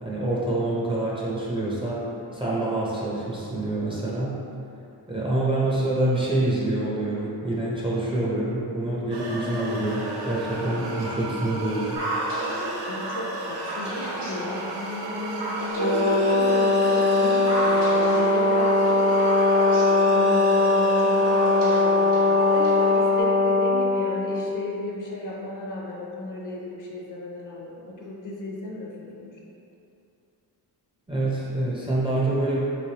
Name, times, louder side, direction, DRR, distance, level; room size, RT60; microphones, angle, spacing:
voice 1, 0.0-4.4 5.1-12.0 31.1-32.6, right 2 dB, 15° right, -7 dB, 0.4 m, -26 dB
sound 1, 9.1-23.2, right 1 dB, 70° right, 0.6 m, -34 dB
sound 2, 12.0-23.0, right 1 dB, 90° right, 1.3 m, -33 dB
voice 2, 12.9-19.0 20.1-29.3, left 1 dB, 50° left, -3 dB, 0.5 m, -34 dB
Brass instrument, 15.8-24.5, left 2 dB, 85° left, 0.7 m, -20 dB
3.4 x 3.1 x 2.8 m, 2.7 s
wide cardioid pair, 155°, 41 cm